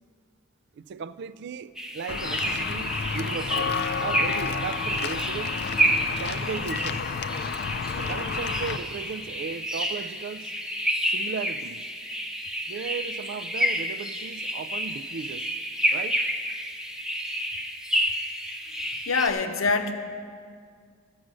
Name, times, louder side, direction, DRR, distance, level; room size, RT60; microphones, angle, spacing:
voice 1, 0.8-5.6 6.2-7.2 8.0-10.5 11.1-11.9 12.7-15.5 15.9-16.2, right 6 dB, 55° right, 0.3 m, -36 dB
sound 1, 1.8-19.3, equal, 5° right, 0.5 m, -30 dB
Walk footsteps / Bell, 2.1-8.8, left 5 dB, 50° left, 0.4 m, -31 dB
voice 2, 19.1-19.9, left 4 dB, 75° left, 0.8 m, -24 dB
14.5 x 6.1 x 6.2 m
head